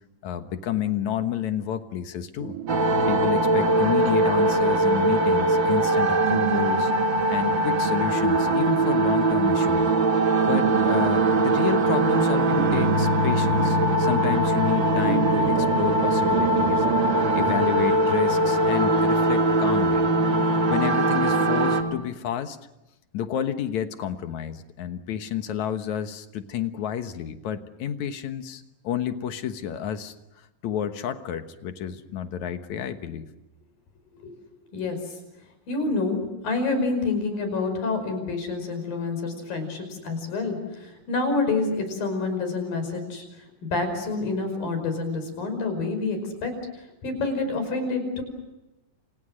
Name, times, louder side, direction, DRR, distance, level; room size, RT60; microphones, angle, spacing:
voice 1, 0.2-2.6 3.1-6.9 7.3-10.0 10.5-16.9 17.4-20.1 20.7-22.6 23.1-30.1 30.6-33.2, left 9 dB, 65° left, 8 dB, 2.4 m, -30 dB
sound 1, 2.4-17.7, right 12 dB, 70° right, 2.4 m, -35 dB
sound 2, 2.7-21.8, right 2 dB, 40° right, 2.4 m, -21 dB
voice 2, 35.7-43.2 43.6-46.5 47.0-48.2, left 3 dB, 90° left, 8 dB, 7.1 m, -27 dB
29.0 x 28.5 x 6.5 m, 0.96 s
omnidirectional pair, 3.9 m